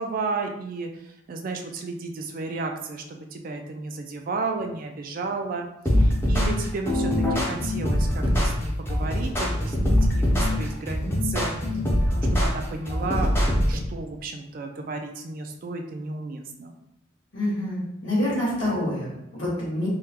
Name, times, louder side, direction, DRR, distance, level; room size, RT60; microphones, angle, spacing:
voice 1, 0.0-11.5 12.0-16.7, right 3 dB, 45° right, 4 dB, 0.3 m, -33 dB
sound 1, 5.9-13.8, left 1 dB, 10° left, 0.5 m, -23 dB
voice 2, 17.3-19.9, left 1 dB, 70° left, -7 dB, 1.5 m, -27 dB
3.6 x 2.2 x 2.8 m, 0.80 s
head